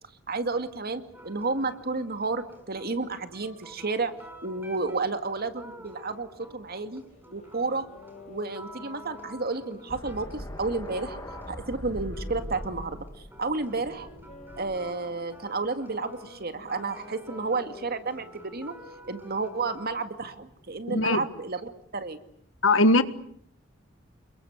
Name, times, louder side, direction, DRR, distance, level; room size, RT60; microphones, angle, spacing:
voice 1, 0.3-4.1 4.4-7.0 7.3-7.9 8.3-11.2 11.5-13.1 13.4-14.1 14.6-18.7 19.1-22.2, right 3 dB, 50° right, 2.2 m, -31 dB
sound 1, 1.1-20.3, right 1 dB, 10° right, 6.4 m, -50 dB
sound 2, 7.1-12.8 13.5-18.9, left 3 dB, 40° left, 7.3 m, -51 dB
sound 3, 9.9-14.9, left 1 dB, 20° left, 2.3 m, -41 dB
voice 2, 20.9-21.2 22.6-23.0, left 2 dB, 75° left, 1.6 m, -20 dB
28.5 x 22.5 x 8.1 m
head